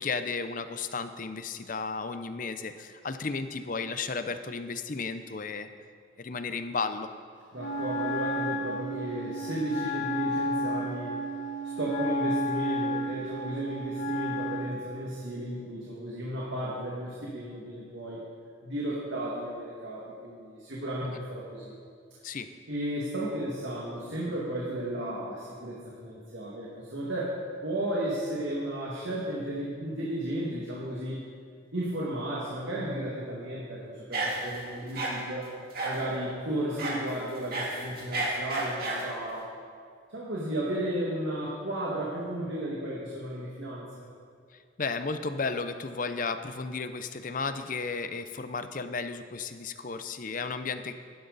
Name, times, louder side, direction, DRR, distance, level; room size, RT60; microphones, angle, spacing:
voice 1, 0.0-5.7 6.2-7.1 22.2-22.5 44.8-50.9, left 4 dB, 45° left, 10 dB, 0.6 m, -33 dB
voice 2, 7.5-11.2 11.8-18.2 18.6-21.7 22.7-31.2 31.7-35.5 35.8-39.5 40.1-43.9, right 1 dB, 70° right, -5 dB, 2.1 m, -34 dB
Wind instrument woodwind instrument, 7.6-14.8, equal, 70° left, 1.9 m, -32 dB
sound 1, 34.1-34.6 35.0-35.1 35.7-36.1 36.8-37.0 37.4-39.1, right 2 dB, 50° right, 2.4 m, -31 dB
16.0 x 11.5 x 4.1 m, 2.1 s
head